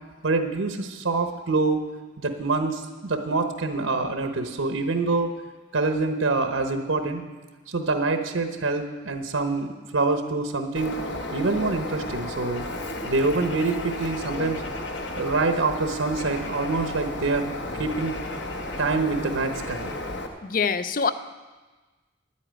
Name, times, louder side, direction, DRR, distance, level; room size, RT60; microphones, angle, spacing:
voice 1, 0.2-1.8 2.2-5.3 5.7-7.2 7.7-11.0 11.3-12.6 13.0-14.6 15.1-17.5 17.8-18.2 18.8-19.9, right 3 dB, 80° right, 6 dB, 1.0 m, -25 dB
Bird, 10.8-20.3, left 1 dB, 60° left, 1.1 m, -33 dB
voice 2, 20.4-21.1, left 5 dB, 40° left, 13 dB, 0.5 m, -24 dB
10.0 x 8.7 x 9.0 m, 1.3 s
head